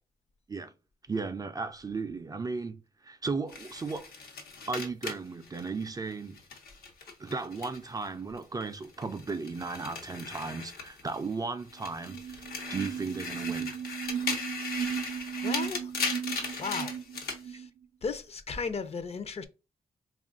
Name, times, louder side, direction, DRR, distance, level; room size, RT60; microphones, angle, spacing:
voice 1, 1.1-4.1 4.7-6.4 7.2-13.7, right 4 dB, 25° right, 0.3 m, -35 dB
sound 1, 3.5-8.1 8.4-11.3 11.7-17.4, left 4 dB, 85° left, 0.9 m, -38 dB
sound 2, 12.0-17.7, right 8 dB, 75° right, 0.5 m, -36 dB
voice 2, 15.4-15.9 16.6-16.9 17.4-17.7 18.0-19.4, left 5 dB, 45° left, 0.5 m, -35 dB
3.8 x 2.4 x 3.6 m
cardioid pair, 90°, 15 cm